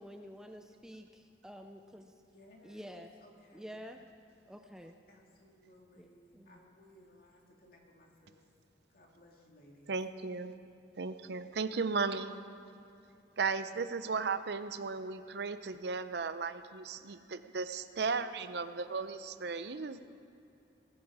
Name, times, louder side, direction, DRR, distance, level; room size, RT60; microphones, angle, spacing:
voice 1, 0.0-2.1 2.6-3.1 3.5-4.0 4.5-5.0 6.0-6.1 6.3-6.6, equal, 5° right, 5 dB, 0.5 m, -49 dB
voice 2, 2.3-3.8 4.8-8.4 8.9-9.9, left 1 dB, 55° left, 0 dB, 2.4 m, -61 dB
voice 3, 9.9-10.5 11.0-12.4 13.4-20.1, right 4 dB, 65° right, 12 dB, 0.6 m, -35 dB
19.5 x 12.0 x 4.9 m, 2.8 s
head